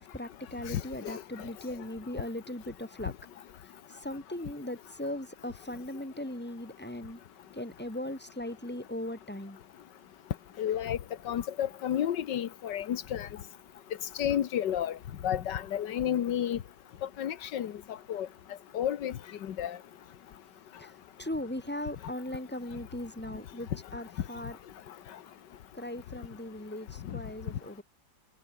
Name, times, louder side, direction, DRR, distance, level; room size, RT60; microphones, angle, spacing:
voice 1, 0.0-3.1 3.9-7.2 7.5-9.6 20.8-24.6 25.7-27.8, left 1 dB, 5° left, 2.4 m, -39 dB
voice 2, 0.7-1.2 10.6-11.0 11.3-13.3 14.2-15.0 15.2-16.6 17.2-17.7 18.1-18.3 18.7-19.1 19.4-19.8, left 10 dB, 80° left, 1.8 m, -31 dB
omnidirectional pair, 1.9 m